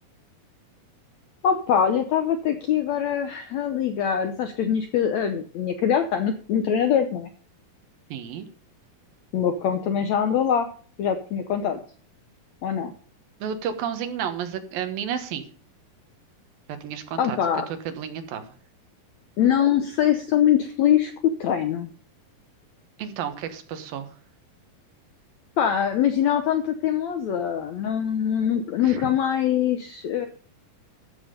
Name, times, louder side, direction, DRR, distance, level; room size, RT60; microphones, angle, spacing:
voice 1, 1.4-7.3 9.3-10.7 11.0-11.8 12.6-12.9 17.2-17.7 19.4-21.1 21.4-21.9 25.6-30.3, left 9 dB, 75° left, 7 dB, 1.6 m, -23 dB
voice 2, 8.1-8.5 13.4-15.4 16.8-17.4 17.9-18.4 23.0-24.1 28.8-29.1, right 8 dB, 75° right, 8 dB, 3.0 m, -31 dB
14.0 x 7.4 x 5.1 m, 0.43 s
omnidirectional pair, 4.2 m